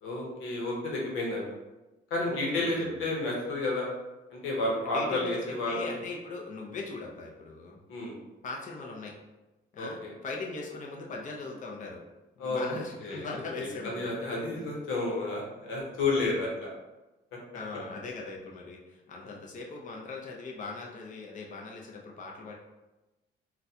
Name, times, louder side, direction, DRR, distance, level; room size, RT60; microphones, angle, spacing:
voice 1, 0.0-1.4 2.1-3.9 4.3-6.0 7.9-8.1 9.8-10.1 12.4-12.7 13.0-13.3 13.6-16.7, left 2 dB, 90° left, -2 dB, 0.9 m, -31 dB
voice 2, 2.2-3.1 4.8-5.4 5.7-7.8 8.4-9.1 9.7-12.0 12.4-14.1 14.5-14.7 17.5-22.5, left 3 dB, 40° left, -1 dB, 0.6 m, -40 dB
3.9 x 2.2 x 2.7 m, 1.1 s
cardioid pair, 90°, 20 cm